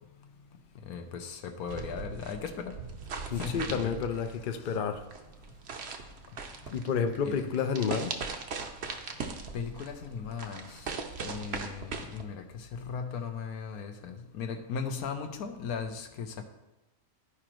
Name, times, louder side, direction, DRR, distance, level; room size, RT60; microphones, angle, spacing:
voice 1, 0.8-2.8 3.3-4.0 4.6-4.7 7.2-7.3 9.5-10.9 11.2-16.4, left 6 dB, 80° left, 6 dB, 1.2 m, -37 dB
sound 1, 1.7-12.2, right 5 dB, 55° right, 0.9 m, -40 dB
voice 2, 3.3-5.0 6.6-8.2, left 6 dB, 55° left, 7 dB, 0.6 m, -30 dB
13.0 x 5.0 x 3.0 m, 1.0 s
omnidirectional pair, 1.5 m